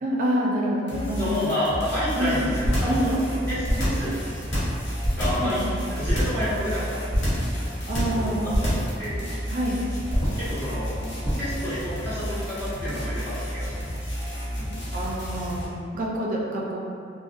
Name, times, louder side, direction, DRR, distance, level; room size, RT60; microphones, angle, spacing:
voice 1, 0.0-1.3 2.2-2.4 2.8-3.1 5.4-5.7 7.9-8.7 9.5-9.8 14.9-16.8, equal, 45° right, -3 dB, 0.4 m, -27 dB
sound 1, 0.9-15.7, equal, 65° left, 0.6 m, -32 dB
voice 2, 1.1-4.1 5.2-5.6 5.9-7.0 8.1-9.2 10.3-10.9 11.4-13.8 14.5-14.7, equal, 10° left, -14 dB, 0.7 m, -29 dB
sound 2, 2.7-3.0 3.6-4.1 4.5-5.5 6.1-6.4 7.1-7.5 7.9-8.2 8.5-8.9 10.1-10.5 11.2-11.5, equal, 90° left, 0.9 m, -25 dB
2.6 x 2.1 x 2.4 m, 2.4 s
head